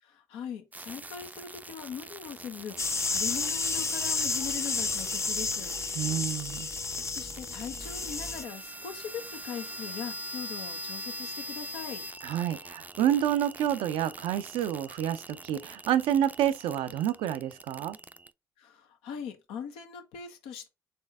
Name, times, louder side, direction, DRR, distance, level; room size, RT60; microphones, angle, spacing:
voice 1, 0.0-5.8 7.1-12.0 18.6-20.7, left 7 dB, 90° left, 0.9 m, -40 dB
sound 1, 0.7-18.3, right 1 dB, 20° right, 0.4 m, -43 dB
sound 2, 2.8-8.4, left 4 dB, 30° left, 0.8 m, -31 dB
voice 2, 6.0-6.7 12.2-18.0, right 10 dB, 85° right, 0.5 m, -28 dB
4.3 x 3.3 x 3.5 m
supercardioid pair, 55°, 9 cm